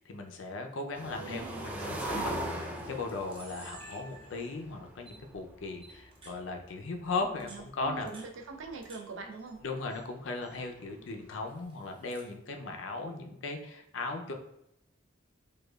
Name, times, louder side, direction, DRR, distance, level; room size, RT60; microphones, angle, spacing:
voice 1, 0.0-8.1 9.6-14.3, left 3 dB, 65° left, 4 dB, 0.5 m, -37 dB
sound 1, 0.9-5.8 6.0-6.1 6.3-6.4 7.1-7.3 7.6-7.7 8.0-8.1 8.3-8.8 10.1-10.2 10.5-11.5, right 1 dB, 5° right, 0.4 m, -39 dB
voice 2, 1.1-1.7 7.4-9.6, right 4 dB, 70° right, 5 dB, 0.5 m, -43 dB
Camera, 2.8-2.9 3.1-4.6 5.1-5.2 5.8-6.4 7.2-9.0 9.3-10.0 10.3-10.7 11.5-12.3, right 2 dB, 30° right, 0.8 m, -52 dB
4.9 x 2.3 x 2.3 m, 0.82 s
head